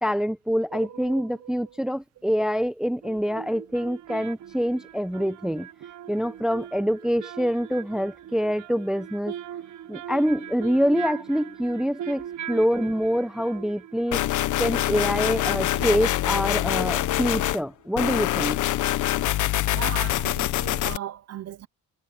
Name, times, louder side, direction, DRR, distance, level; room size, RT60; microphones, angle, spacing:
voice 1, 0.0-5.7 6.1-9.3 9.9-14.2 14.6-18.6, equal, ahead, 0.7 m, -25 dB
sound 1, 0.7-1.9 3.0-17.5 17.8-17.9, right 10 dB, 70° right, 1.2 m, -41 dB
sound 2, 14.1-17.6 18.0-21.0, left 14 dB, 80° left, 1.0 m, -25 dB
voice 2, 19.4-21.7, right 12 dB, 55° right, 0.7 m, -37 dB
cardioid pair, 90°, 30 cm